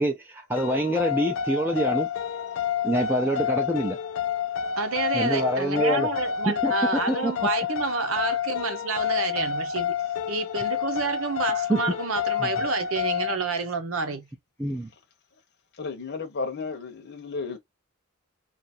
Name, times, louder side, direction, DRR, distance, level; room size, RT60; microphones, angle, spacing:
voice 1, 0.0-2.1 2.8-4.0 5.1-6.1 6.4-7.3 11.7-11.8 12.4-12.5 14.6-14.9, right 1 dB, 10° right, 0.6 m, -26 dB
sound 1, 0.6-13.4, left 8 dB, 70° left, 0.4 m, -29 dB
voice 2, 4.8-9.9 10.3-14.3, right 4 dB, 80° right, 0.9 m, -29 dB
voice 3, 15.8-17.6, left 4 dB, 55° left, 0.9 m, -33 dB
2.8 x 2.5 x 4.2 m
head